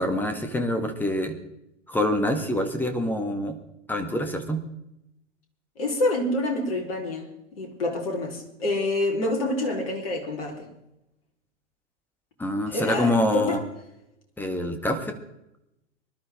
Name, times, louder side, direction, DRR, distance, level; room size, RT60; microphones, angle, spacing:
voice 1, 0.0-1.3 1.9-3.6 3.9-4.6 12.4-13.6 14.4-15.1, left 1 dB, 5° left, 7 dB, 1.8 m, -26 dB
voice 2, 5.8-10.6 12.7-13.6, left 2 dB, 50° left, 2 dB, 4.1 m, -27 dB
25.0 x 12.0 x 3.7 m, 0.86 s
figure-of-eight pair, 105°, 37 cm